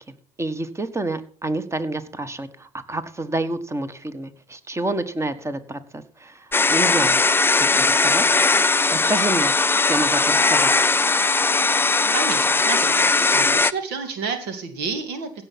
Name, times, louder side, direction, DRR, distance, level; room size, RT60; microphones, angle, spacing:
voice 1, 0.4-6.4 6.7-7.2 7.6-8.3 8.5-9.5 9.9-10.7, right 2 dB, 15° right, 12 dB, 1.5 m, -28 dB
sound 1, 6.5-13.7, left 3 dB, 10° left, 0.4 m, -19 dB
voice 2, 11.8-13.0 13.3-15.4, right 5 dB, 65° right, 8 dB, 2.2 m, -30 dB
16.0 x 5.8 x 5.9 m, 0.43 s
hypercardioid pair, 65°, 18 cm